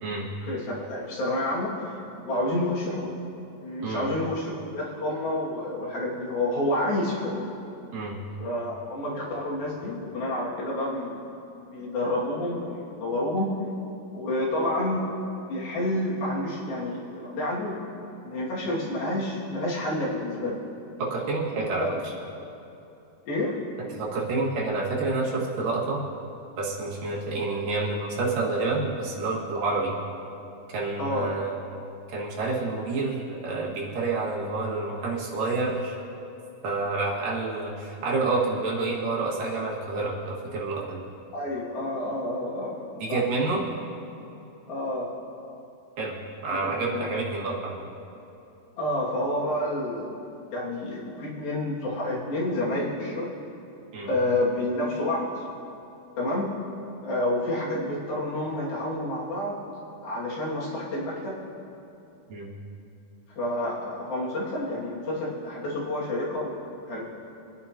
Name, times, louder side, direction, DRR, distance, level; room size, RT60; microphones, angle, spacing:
voice 1, 0.5-1.9 2.2-3.1 3.6-7.5 8.4-11.2 11.7-13.5 14.1-15.1 15.5-20.6 21.8-22.0 23.3-23.6 31.0-31.4 41.3-42.8 43.1-43.2 44.7-45.1 46.6-47.1 48.8-50.2 50.5-53.3 54.0-55.4 56.2-56.5 57.0-59.5 60.0-61.4 63.4-67.1, left 1 dB, 80° left, -6 dB, 4.2 m, -29 dB
voice 2, 21.0-21.9 23.9-26.0 26.6-29.9 30.7-31.5 32.1-36.0 36.6-41.0 43.0-43.6 46.0-47.8 53.9-54.1 62.3-62.5, right 3 dB, 70° right, -5 dB, 3.6 m, -28 dB
25.5 x 9.7 x 2.9 m, 2.8 s
omnidirectional pair, 4.1 m